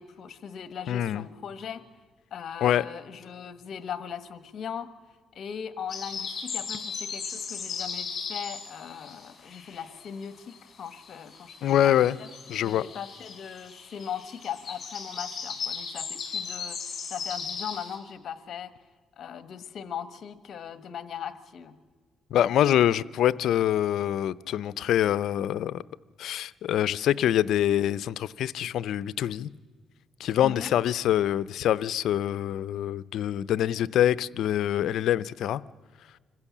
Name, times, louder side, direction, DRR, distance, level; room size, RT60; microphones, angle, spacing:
voice 1, 0.0-1.8 2.3-4.9 5.3-12.3 12.6-18.7 19.2-21.7 30.4-30.7, left 8 dB, 60° left, 1.4 m, -39 dB
voice 2, 0.9-1.2 2.6-2.8 11.6-12.2 12.5-12.8 22.3-25.8 26.2-29.5 30.2-35.6, left 11 dB, 75° left, 0.5 m, -25 dB
sound 1, 5.9-10.2 10.5-18.0, left 5 dB, 45° left, 6.1 m, -37 dB
26.0 x 15.5 x 7.3 m
cardioid pair, 90°, 0 cm